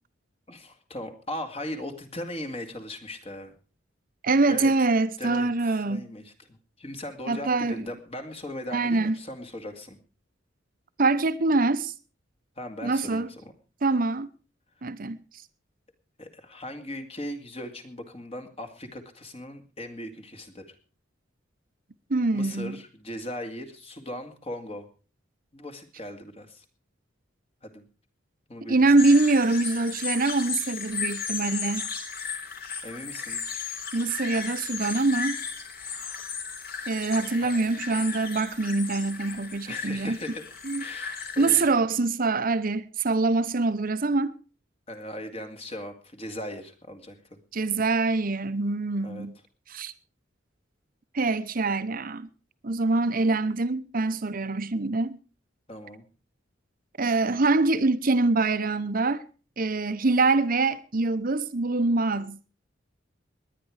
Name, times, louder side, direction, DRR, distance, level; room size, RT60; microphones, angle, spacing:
voice 1, 0.5-3.5 4.5-4.7 5.2-10.0 12.6-13.4 16.2-20.7 22.3-24.9 25.5-26.6 27.6-27.8 28.5-28.9 32.8-33.4 37.4-37.7 39.7-40.4 40.8-41.6 44.9-47.4 49.0-49.3 55.7-56.0, left 1 dB, 30° left, 2.3 m, -38 dB
voice 2, 4.2-6.1 7.3-7.9 8.7-9.2 11.0-11.9 12.8-13.3 13.8-14.3 14.8-15.2 22.1-22.8 28.7-31.9 33.9-35.4 36.9-40.2 40.6-40.8 41.4-44.3 47.5-49.4 49.7-49.9 51.1-52.3 52.6-55.2 57.0-59.2 59.6-62.4, right 3 dB, 50° right, 0.9 m, -24 dB
sound 1, 29.0-41.6, left 5 dB, 50° left, 3.4 m, -35 dB
20.0 x 10.0 x 4.9 m
head